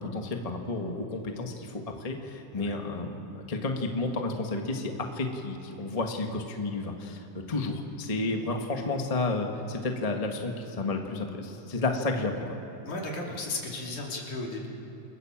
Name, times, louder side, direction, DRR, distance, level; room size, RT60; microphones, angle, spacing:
voice 1, 0.0-12.5, left 2 dB, 20° left, 3 dB, 1.0 m, -31 dB
voice 2, 12.8-14.7, left 2 dB, 70° left, -2 dB, 4.6 m, -35 dB
28.5 x 20.5 x 7.4 m, 2.8 s
omnidirectional pair, 3.5 m